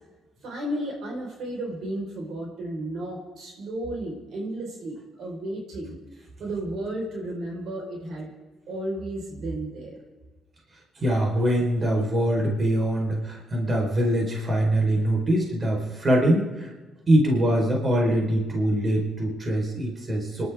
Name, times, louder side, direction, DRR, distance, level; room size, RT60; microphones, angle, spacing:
voice 1, 0.4-6.0 6.4-8.3 8.7-10.0, right 1 dB, 70° right, -1 dB, 4.9 m, -33 dB
voice 2, 11.0-16.7 17.1-20.5, right 1 dB, 35° right, 0 dB, 4.6 m, -23 dB
26.5 x 12.0 x 3.8 m, 1.2 s
cardioid pair, 90°, 0 cm